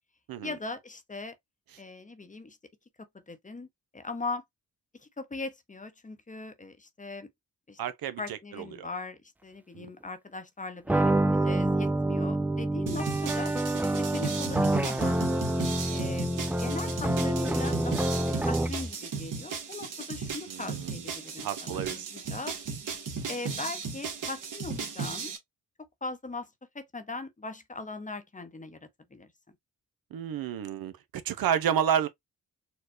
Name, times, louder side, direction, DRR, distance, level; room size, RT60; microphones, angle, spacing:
voice 1, 0.4-1.4 1.8-2.6 3.3-3.7 3.9-4.4 5.0-7.3 7.7-7.8 8.2-13.5 13.8-15.2 15.9-18.1 18.4-22.6 23.3-25.3 26.0-26.5 26.7-29.3, left 3 dB, 20° left, 0.7 m, -40 dB
voice 2, 7.8-8.9 9.7-9.9 20.5-21.0 21.4-22.1 30.1-32.1, right 9 dB, 75° right, 0.6 m, -31 dB
sound 1, 10.9-18.9, right 1 dB, 5° right, 0.3 m, -27 dB
sound 2, 12.9-25.4, right 5 dB, 60° right, 1.3 m, -36 dB
4.3 x 2.2 x 2.5 m
cardioid pair, 75°, 36 cm